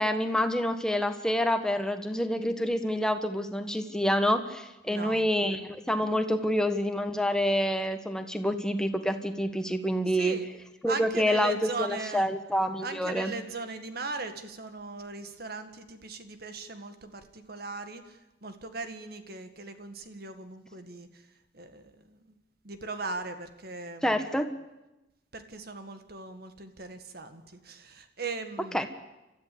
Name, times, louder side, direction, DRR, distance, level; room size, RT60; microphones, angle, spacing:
voice 1, 0.0-10.4 10.8-13.3 24.0-24.5 28.7-28.9, equal, 5° left, 7 dB, 1.4 m, -27 dB
voice 2, 4.9-5.3 10.1-10.5 10.8-12.3 12.8-21.3 21.5-22.4 22.6-24.4 25.3-28.9, right 3 dB, 60° right, 8 dB, 1.8 m, -39 dB
30.0 x 13.5 x 8.6 m, 0.99 s
head